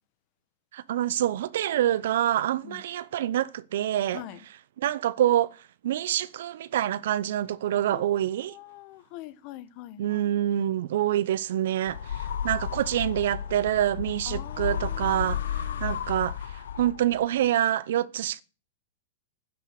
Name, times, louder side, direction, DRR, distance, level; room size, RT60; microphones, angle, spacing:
voice 1, 0.7-4.3 4.8-5.6 5.8-8.5 10.0-16.4 16.8-18.4, right 12 dB, 70° right, 0.7 m, -26 dB
voice 2, 7.9-10.2 14.2-15.9, left 14 dB, 50° left, 1.1 m, -44 dB
sound 1, 11.9-17.2, left 8 dB, 85° left, 1.0 m, -33 dB
10.0 x 10.0 x 6.5 m
hypercardioid pair, 125°, 0 cm